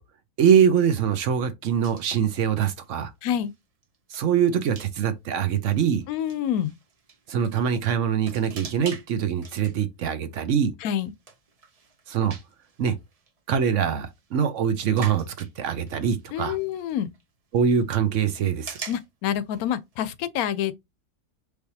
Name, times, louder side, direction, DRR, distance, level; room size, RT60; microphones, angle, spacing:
voice 1, 0.4-3.1 4.1-6.0 7.3-10.7 12.1-12.4 12.8-13.0 13.5-16.6 17.5-18.8, right 7 dB, 65° right, 1.0 m, -23 dB
sound 1, 1.8-2.5 2.8-3.0 3.4-3.6 3.8-4.3 4.6-4.9 5.6-7.6 8.3-9.1 9.4-9.8 10.4-17.2 17.5-17.8 18.4-19.1 19.5-19.7 19.9-20.1, right 5 dB, 45° right, 0.5 m, -44 dB
voice 2, 3.2-3.5 6.1-6.7 10.8-11.1 16.3-17.1 18.9-20.9, left 10 dB, 85° left, 1.0 m, -27 dB
4.7 x 3.3 x 2.7 m
omnidirectional pair, 1.5 m